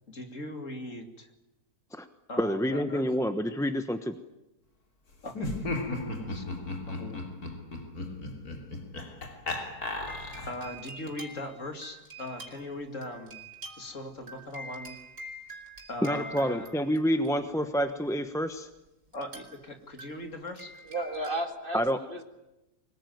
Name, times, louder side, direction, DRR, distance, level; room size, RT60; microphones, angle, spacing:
voice 1, 0.1-1.3 2.3-3.0 5.2-5.5 6.1-6.4 6.9-7.2 10.5-13.4 13.8-15.0 15.9-16.7 17.6-17.7 19.1-20.7, left 1 dB, 50° left, 5 dB, 2.8 m, -40 dB
voice 2, 2.4-4.1 16.0-18.7 21.7-22.0, equal, 5° left, 8 dB, 0.8 m, -28 dB
Laughter, 5.3-10.7, left 2 dB, 70° left, 3.7 m, -35 dB
sound 1, 10.1-17.8 19.1-19.6 20.0-21.4, right 1 dB, 80° right, 4.7 m, -46 dB
voice 3, 20.9-22.2, right 1 dB, 35° right, 6 dB, 2.2 m, -33 dB
24.5 x 20.0 x 9.4 m, 0.97 s
omnidirectional pair, 1.7 m